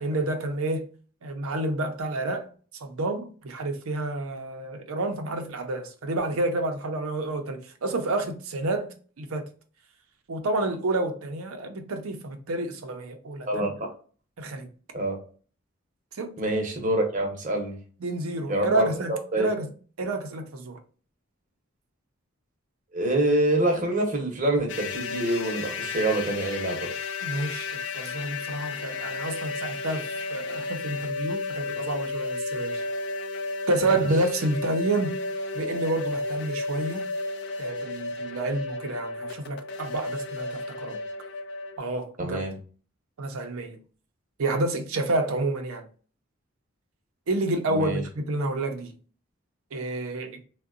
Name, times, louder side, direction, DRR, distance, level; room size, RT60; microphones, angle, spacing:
voice 1, 0.0-0.9 1.2-2.5 2.8-9.4 10.3-13.7 14.4-14.7 16.1-16.4 18.0-19.7 20.0-20.8 27.2-32.8 33.7-35.1 35.5-37.0 37.6-41.0 41.8-42.4 43.2-43.8 44.4-45.9 47.3-48.9 49.7-50.4, right 2 dB, 85° right, 0.6 m, -29 dB
voice 2, 16.4-17.8 18.5-19.5 22.9-26.9 42.2-42.5 47.7-48.0, right 1 dB, 40° right, 0.8 m, -26 dB
sound 1, 24.7-41.8, left 3 dB, 55° left, 0.3 m, -33 dB
3.6 x 2.2 x 2.4 m
head